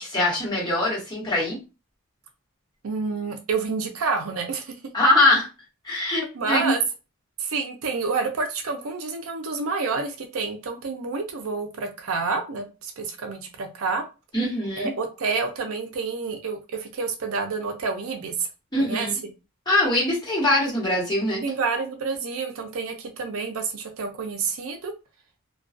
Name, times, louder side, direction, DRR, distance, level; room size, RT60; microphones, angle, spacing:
voice 1, 0.0-1.6 4.9-5.5 5.8-6.7 14.3-14.9 18.7-19.1 19.7-21.4, left 1 dB, 20° left, -6 dB, 1.2 m, -22 dB
voice 2, 2.8-4.8 6.3-6.8 7.4-14.0 14.8-18.3 18.8-19.1 21.4-24.9, right 4 dB, 75° right, 5 dB, 0.5 m, -28 dB
2.3 x 2.2 x 2.4 m, 0.29 s
head